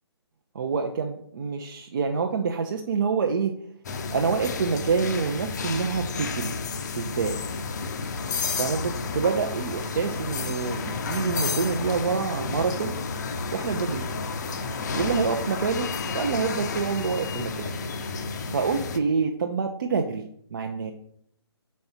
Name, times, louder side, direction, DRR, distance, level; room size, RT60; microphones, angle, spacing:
voice 1, 0.5-3.5 4.1-6.6 6.9-7.4 8.6-12.9 13.5-14.2 14.9-17.8 18.5-20.2 20.5-20.9, right 5 dB, 45° right, 3 dB, 0.6 m, -27 dB
sound 1, 3.8-19.0, left 4 dB, 40° left, 0.6 m, -31 dB
4.7 x 4.2 x 5.6 m, 0.68 s
figure-of-eight pair, 140°, 14 cm